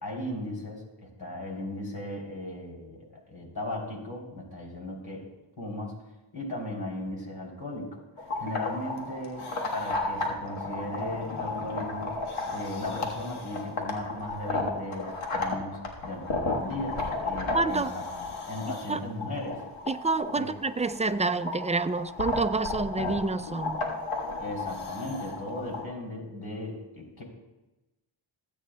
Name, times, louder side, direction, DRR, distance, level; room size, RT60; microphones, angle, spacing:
voice 1, 0.0-5.3 5.6-6.0 6.3-12.2 12.5-19.6 20.4-20.5 24.4-27.2, left 1 dB, 45° left, -1 dB, 3.4 m, -37 dB
sound 1, 8.2-25.8, left 3 dB, 80° left, 1.6 m, -34 dB
voice 2, 17.5-17.9 18.9-19.0 19.9-23.8, right 3 dB, 15° right, 10 dB, 0.4 m, -28 dB
16.0 x 8.7 x 2.3 m, 1.0 s
cardioid pair, 45°, 50 cm